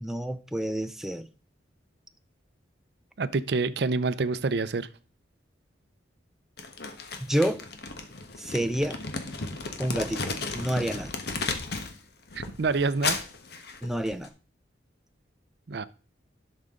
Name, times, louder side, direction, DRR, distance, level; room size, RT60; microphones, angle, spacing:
voice 1, 0.0-1.3 7.2-7.6 8.4-9.0 9.8-11.1 13.8-14.3, right 1 dB, ahead, 0.4 m, -29 dB
voice 2, 3.2-4.9 12.3-13.2 15.7-15.8, right 4 dB, 60° right, 0.5 m, -27 dB
Crumpling crinkling, 6.6-12.0 12.3-14.3, left 4 dB, 60° left, 1.2 m, -34 dB
11.5 x 6.4 x 3.7 m
head